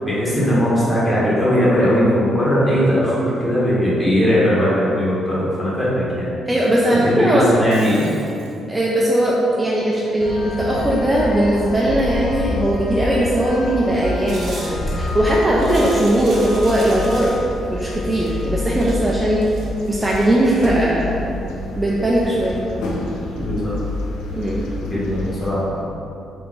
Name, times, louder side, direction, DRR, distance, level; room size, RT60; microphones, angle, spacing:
voice 1, 0.0-6.3 7.0-8.1 23.3-23.8 24.8-25.8, equal, 20° left, -8 dB, 1.4 m, -19 dB
voice 2, 6.5-7.5 8.7-17.4 17.7-19.4 19.9-21.1 21.8-22.6 24.3-24.6, right 1 dB, 15° right, -5 dB, 0.5 m, -19 dB
Shatter, 7.5-8.6, right 3 dB, 90° right, 0.6 m, -42 dB
sound 1, 10.2-25.5, left 2 dB, 90° left, 0.5 m, -28 dB
sound 2, 14.3-17.4 18.1-20.4, right 2 dB, 60° right, 1.0 m, -37 dB
3.4 x 3.0 x 3.7 m, 2.7 s
cardioid pair, 90°, 0 cm